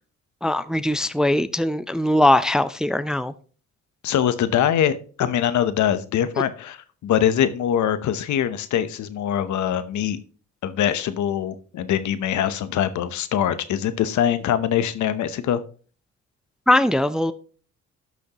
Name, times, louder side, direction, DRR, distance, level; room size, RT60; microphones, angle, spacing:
voice 1, 0.4-3.3 16.7-17.3, left 1 dB, ahead, 13 dB, 0.4 m, -20 dB
voice 2, 4.0-10.2 10.6-15.6, left 10 dB, 70° left, 13 dB, 0.9 m, -23 dB
12.0 x 6.3 x 2.9 m, 0.41 s
cardioid pair, 90°, 30 cm